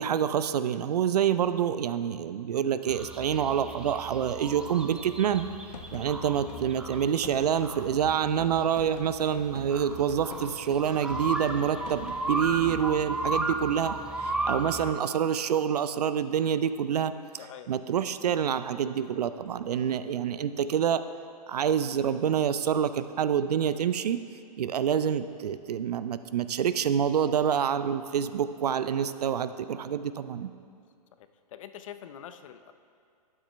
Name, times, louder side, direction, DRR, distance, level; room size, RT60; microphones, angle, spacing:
voice 1, 0.0-5.5 5.9-17.1 17.7-21.0 21.5-24.2 24.6-30.5, right 8 dB, 70° right, 13 dB, 0.5 m, -27 dB
sound 1, 2.9-14.9, right 2 dB, 5° right, 0.4 m, -35 dB
sound 2, 5.3-12.9, left 6 dB, 75° left, 1.2 m, -45 dB
voice 2, 17.4-17.7 29.0-29.1 31.2-32.7, left 9 dB, 55° left, 11 dB, 0.6 m, -45 dB
12.0 x 8.7 x 3.4 m, 2.3 s
hypercardioid pair, 125°, 21 cm